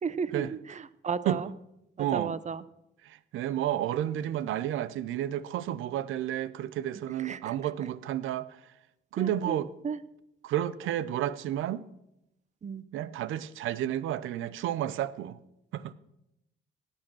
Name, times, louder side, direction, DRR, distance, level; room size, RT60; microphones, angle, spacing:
voice 1, 0.0-0.4 0.7-1.5 2.0-2.6 7.2-7.5 9.2-9.6 9.8-10.0 12.6-12.8, right 6 dB, 35° right, 0.8 m, -33 dB
voice 2, 2.0-2.4 3.1-8.5 9.1-9.7 10.4-11.8 12.9-15.4 15.7-15.9, right 11 dB, 85° right, 0.7 m, -31 dB
16.5 x 8.9 x 6.2 m
cardioid pair, 90°, 20 cm